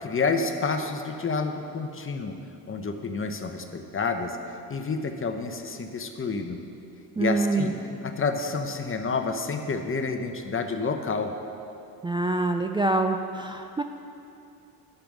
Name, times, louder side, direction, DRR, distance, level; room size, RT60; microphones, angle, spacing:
voice 1, 0.0-2.4 2.7-4.4 4.7-6.6 7.2-7.7 8.0-11.3, left 4 dB, 30° left, 6 dB, 1.0 m, -29 dB
voice 2, 7.2-7.7 12.0-13.8, right 2 dB, 10° right, 4 dB, 0.4 m, -25 dB
10.0 x 7.0 x 6.1 m, 2.6 s
supercardioid pair, 80°, 42 cm